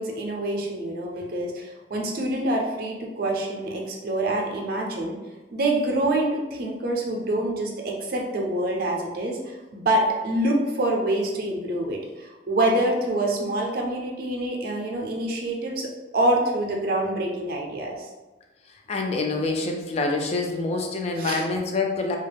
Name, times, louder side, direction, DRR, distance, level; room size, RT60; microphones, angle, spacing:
voice 1, 0.0-5.2 5.5-18.1 21.2-21.5, right 1 dB, 50° right, 0 dB, 0.5 m, -26 dB
voice 2, 18.9-22.2, left 3 dB, 35° left, 2 dB, 0.3 m, -26 dB
2.3 x 2.0 x 3.2 m, 1.2 s
head